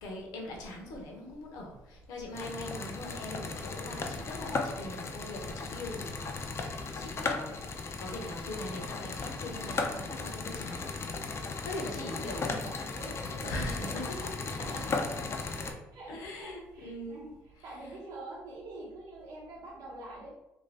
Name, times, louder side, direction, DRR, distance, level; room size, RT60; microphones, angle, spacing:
voice 1, 0.0-10.9 11.6-12.5 13.4-14.2 16.1-17.2, left 1 dB, 75° left, 0 dB, 0.8 m, -41 dB
sound 1, 2.3-15.7, left 4 dB, 40° left, 0.4 m, -36 dB
voice 2, 12.0-14.7 15.0-20.3, right 1 dB, 70° right, -5 dB, 0.8 m, -46 dB
2.6 x 2.4 x 3.2 m, 0.95 s
hypercardioid pair, 60°, 7 cm